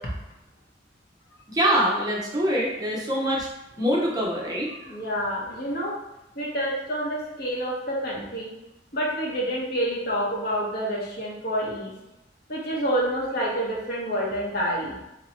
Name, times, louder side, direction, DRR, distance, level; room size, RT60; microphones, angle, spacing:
voice 1, 1.5-3.5 3.8-4.7, equal, 20° right, -3 dB, 0.7 m, -24 dB
voice 2, 4.8-5.9 6.3-8.5 8.9-11.9 12.5-15.0, equal, 55° left, -4 dB, 1.1 m, -28 dB
2.9 x 2.8 x 4.2 m, 0.92 s
head